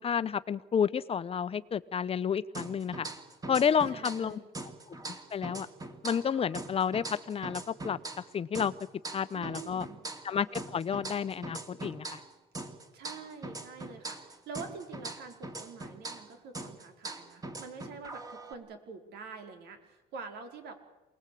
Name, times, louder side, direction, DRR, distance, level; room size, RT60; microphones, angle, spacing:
voice 1, 0.0-3.1 3.5-4.4 5.3-5.7 6.0-8.0 8.3-8.7 9.1-9.9 10.2-12.2, left 7 dB, 35° left, 15 dB, 1.0 m, -30 dB
sound 1, 2.5-4.3 4.5-8.3 8.5-12.3 12.5-16.3 16.5-18.5, right 2 dB, 20° right, 2.9 m, -42 dB
voice 2, 3.9-4.5 9.3-10.0 12.9-20.7, right 5 dB, 75° right, 5 dB, 4.7 m, -46 dB
28.0 x 19.5 x 8.6 m, 1.0 s
cardioid pair, 110°, 17 cm